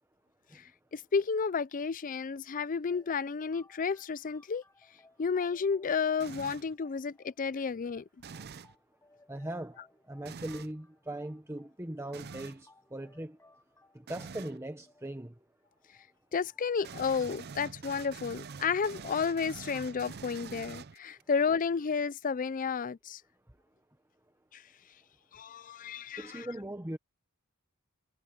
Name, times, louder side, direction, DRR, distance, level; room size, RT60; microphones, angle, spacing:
voice 1, 0.9-4.6 5.2-8.0 16.3-23.2 24.5-24.6 25.3-26.4, left 5 dB, 40° left, 0.4 m, -32 dB
sound 1, 2.9-17.2, left 2 dB, 15° left, 7.4 m, -64 dB
sound 2, 6.2-6.7 8.2-8.8 10.2-10.7 12.1-12.6 14.1-14.6 16.8-21.2, right 5 dB, 50° right, 0.6 m, -45 dB
voice 2, 9.3-9.8 10.1-13.4 13.9-15.3 26.2-27.0, right 1 dB, 15° right, 1.2 m, -39 dB
head